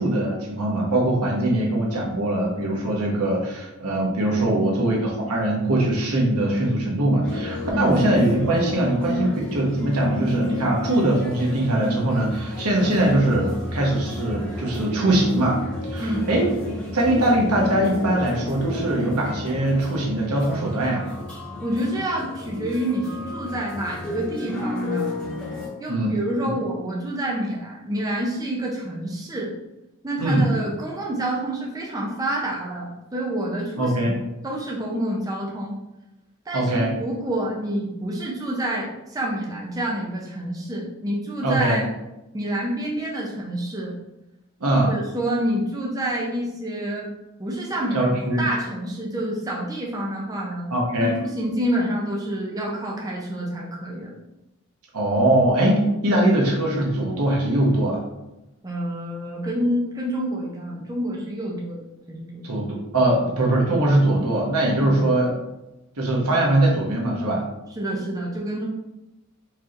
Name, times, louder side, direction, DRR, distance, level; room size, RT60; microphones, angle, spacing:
voice 1, 0.0-15.6 15.9-21.0 25.9-26.5 30.2-30.5 33.8-34.1 36.5-36.9 41.4-41.8 44.6-45.0 47.9-48.4 50.7-51.1 54.9-58.0 62.4-62.7 62.9-65.3 66.0-67.4, right 1 dB, 90° right, -2 dB, 1.1 m, -21 dB
sound 1, 7.2-25.7, left 1 dB, 5° left, 1.3 m, -32 dB
voice 2, 21.6-25.1 25.8-29.5 30.0-34.1 34.4-35.7 36.5-36.7 37.0-41.8 42.3-44.0 44.7-47.1 47.4-50.7 51.0-54.2 58.6-62.4 63.1-63.2 64.8-65.1 67.8-68.7, right 1 dB, 15° right, -3 dB, 0.5 m, -28 dB
4.6 x 3.0 x 2.5 m, 0.94 s
head